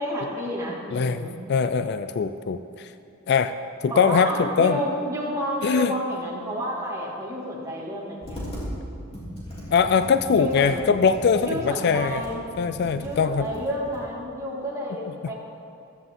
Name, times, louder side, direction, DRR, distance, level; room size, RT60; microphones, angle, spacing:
voice 1, 0.0-1.4 3.9-8.5 10.3-10.9 11.4-12.4 13.0-15.3, equal, 15° right, -6 dB, 2.6 m, -30 dB
voice 2, 0.9-2.9 3.3-3.5 3.8-4.8 5.6-5.9 9.7-12.2 12.6-13.5 15.2-15.3, left 5 dB, 50° left, 11 dB, 0.4 m, -22 dB
Computer keyboard, 8.2-8.7 9.1-14.0, equal, 30° left, 3.4 m, -38 dB
15.0 x 13.0 x 3.9 m, 2.7 s
head